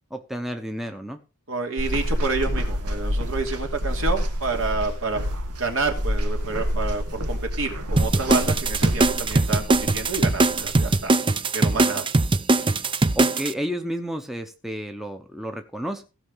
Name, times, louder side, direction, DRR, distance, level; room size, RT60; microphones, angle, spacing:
voice 1, 0.1-1.2 13.1-16.0, equal, ahead, 5 dB, 0.9 m, -31 dB
voice 2, 1.5-5.2 5.6-11.1 11.5-12.1, right 3 dB, 60° right, 4 dB, 2.9 m, -29 dB
sound 1, 1.8-11.0, equal, 80° right, 1.8 m, -28 dB
sound 2, 8.0-13.5, right 2 dB, 20° right, 0.6 m, -21 dB
16.5 x 5.8 x 5.6 m, 0.31 s
head